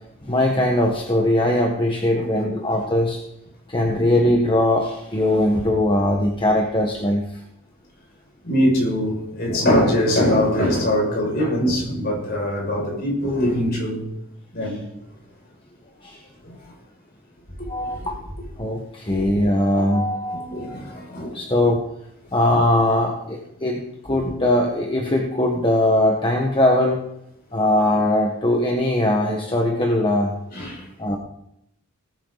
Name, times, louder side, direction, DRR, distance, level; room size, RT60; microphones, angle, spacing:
voice 1, 0.2-3.2 3.7-7.4 16.0-16.2 17.7-18.2 18.6-21.0 21.3-21.9 22.3-27.1 27.5-30.3 31.0-31.2, left 1 dB, 25° left, 1.4 m, -20 dB
voice 2, 2.1-2.9 3.8-4.1 8.4-14.0 14.5-14.8 16.4-16.7 17.8-18.1 20.3-21.3 24.2-24.3 30.5-30.9, equal, 50° left, 6.4 m, -23 dB
19.0 x 10.0 x 4.1 m
head